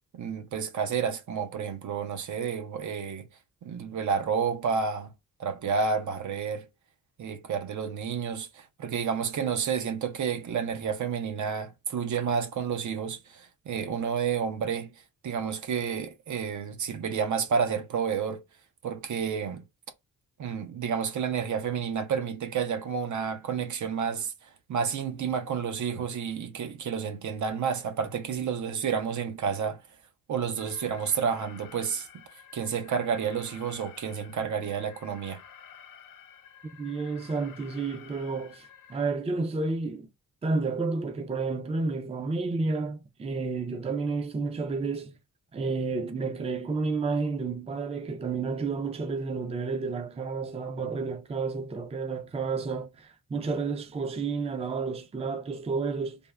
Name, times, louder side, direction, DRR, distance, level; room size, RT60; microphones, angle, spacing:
voice 1, 0.1-3.3 3.6-5.1 5.4-6.7 7.2-14.9 15.2-18.4 18.8-19.6 20.4-24.3 24.7-29.8 30.3-32.1 32.5-35.4, right 6 dB, 60° right, 0.6 m, -30 dB
Alarm, 30.6-39.0, left 8 dB, 70° left, 0.7 m, -51 dB
voice 2, 36.8-40.1 40.4-45.1 45.5-56.2, right 4 dB, 20° right, 0.5 m, -31 dB
3.5 x 2.0 x 2.2 m
cardioid pair, 100°, 34 cm